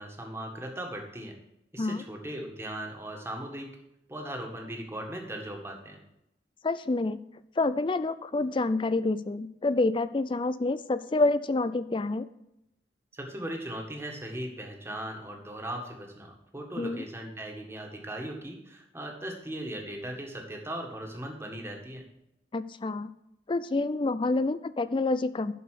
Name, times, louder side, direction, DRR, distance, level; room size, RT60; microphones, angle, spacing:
voice 1, 0.0-1.4 1.7-3.7 4.1-6.0 13.1-22.0, right 1 dB, 15° right, 1 dB, 1.7 m, -38 dB
voice 2, 6.6-7.2 7.6-12.3 16.8-17.0 22.5-23.1 23.5-25.5, left 2 dB, 30° left, 14 dB, 0.4 m, -28 dB
11.5 x 4.9 x 6.5 m, 0.85 s
head